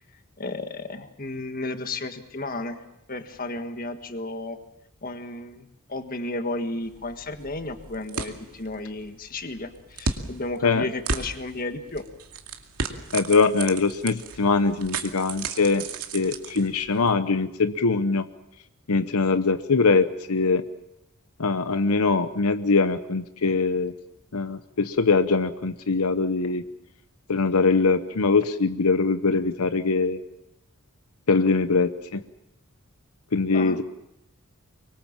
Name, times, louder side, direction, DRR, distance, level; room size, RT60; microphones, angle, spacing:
voice 1, 0.4-2.8 3.1-4.6 5.0-12.0 33.5-33.8, left 2 dB, 40° left, 8 dB, 1.7 m, -33 dB
sound 1, 6.8-17.1, right 4 dB, 85° right, 2.3 m, -35 dB
voice 2, 13.1-15.9 16.1-18.3 18.9-20.6 21.4-23.9 24.3-26.6 27.3-30.2 31.3-32.2 33.3-33.8, left 4 dB, 85° left, 10 dB, 0.9 m, -22 dB
24.5 x 22.5 x 7.4 m, 0.87 s
head